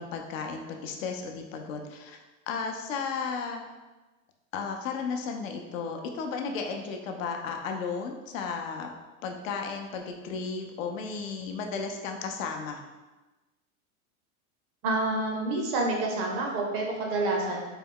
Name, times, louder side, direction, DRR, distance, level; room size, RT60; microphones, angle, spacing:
voice 1, 0.0-2.2 2.5-3.6 4.5-8.9 9.2-12.8, left 5 dB, 65° left, 3 dB, 0.7 m, -34 dB
voice 2, 14.8-17.6, right 2 dB, 30° right, -1 dB, 0.5 m, -28 dB
4.1 x 2.3 x 3.6 m, 1.2 s
supercardioid pair, 150°, 42 cm